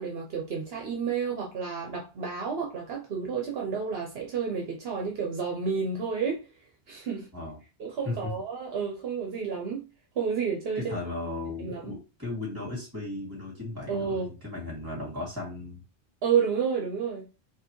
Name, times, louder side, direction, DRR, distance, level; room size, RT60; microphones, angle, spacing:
voice 1, 0.0-6.4 6.9-7.3 7.8-9.8 10.1-11.0 11.6-12.0 13.9-14.3 16.2-17.3, right 6 dB, 65° right, 1.0 m, -30 dB
voice 2, 10.8-15.8, left 2 dB, 20° right, 2.0 m, -36 dB
4.5 x 3.0 x 3.0 m
omnidirectional pair, 1.1 m